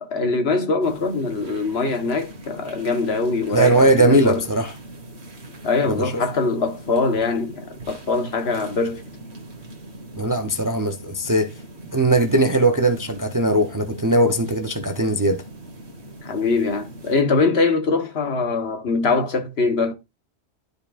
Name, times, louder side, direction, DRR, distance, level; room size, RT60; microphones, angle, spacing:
voice 1, 0.0-4.4 5.6-9.0 16.2-19.9, left 3 dB, 60° left, 1.3 m, -22 dB
sound 1, 0.8-17.2, right 1 dB, 65° right, 1.7 m, -41 dB
voice 2, 3.5-4.7 5.9-6.1 10.2-11.5 11.9-15.4, right 1 dB, 20° right, 0.6 m, -19 dB
12.0 x 4.9 x 2.4 m
omnidirectional pair, 1.2 m